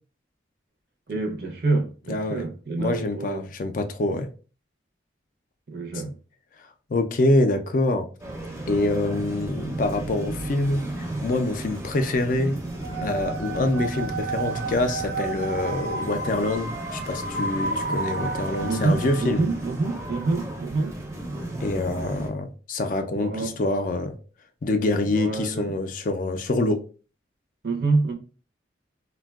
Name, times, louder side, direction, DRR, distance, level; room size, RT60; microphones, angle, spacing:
voice 1, 1.1-3.5 5.7-6.1 18.7-21.0 23.1-23.6 25.1-25.7 27.6-28.2, right 3 dB, 55° right, 0.6 m, -27 dB
voice 2, 2.1-2.4 2.8-4.3 6.9-8.1 8.7-12.6 13.0-19.4 21.6-24.2 24.6-26.8, left 2 dB, 45° left, 0.3 m, -25 dB
sound 1, 8.2-22.3, right 1 dB, 15° right, 0.5 m, -34 dB
sound 2, 12.8-19.6, right 3 dB, 90° right, 0.9 m, -32 dB
3.4 x 2.2 x 2.3 m
head